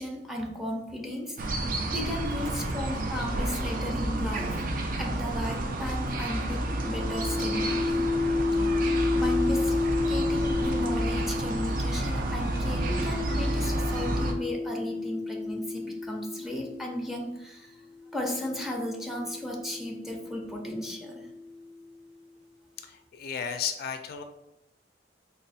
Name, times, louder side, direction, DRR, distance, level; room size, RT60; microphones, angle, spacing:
voice 1, 0.0-1.5 1.9-4.6 5.0-8.1 9.1-17.9 18.1-21.3, left 1 dB, ahead, 0 dB, 0.5 m, -35 dB
sound 1, 1.4-14.3, right 1 dB, 50° right, 0.5 m, -30 dB
sound 2, 6.7-17.0 17.9-21.7, left 3 dB, 30° right, 1.3 m, -32 dB
voice 2, 22.8-24.2, left 7 dB, 55° left, 7 dB, 0.3 m, -34 dB
3.6 x 2.1 x 4.0 m, 0.87 s
head